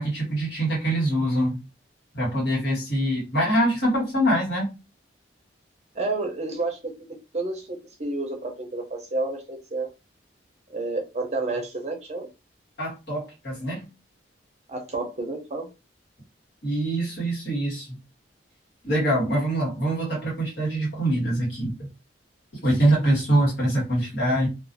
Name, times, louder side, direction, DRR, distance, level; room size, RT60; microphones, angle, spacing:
voice 1, 0.0-1.6 2.1-4.7 12.8-13.9 16.6-18.0 18.8-21.7 22.6-24.5, right 1 dB, 60° left, -4 dB, 1.4 m, -24 dB
voice 2, 5.9-6.8 7.3-9.9 10.7-12.3 14.7-15.7, right 2 dB, 35° right, 2 dB, 0.6 m, -30 dB
2.4 x 2.3 x 2.6 m, 0.28 s
head